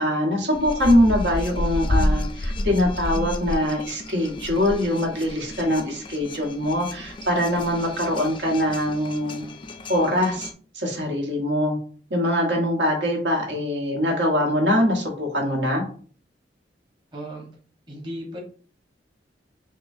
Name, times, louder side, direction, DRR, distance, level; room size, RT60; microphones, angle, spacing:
voice 1, 0.0-9.4 9.9-10.5 10.7-11.8 12.1-15.8, left 1 dB, 85° right, -1 dB, 1.3 m, -23 dB
sound 1, 0.5-10.5, left 1 dB, 30° left, 0.3 m, -30 dB
voice 2, 17.1-17.5 17.9-18.4, equal, 25° right, -2 dB, 1.0 m, -35 dB
5.5 x 2.2 x 2.6 m, 0.43 s
head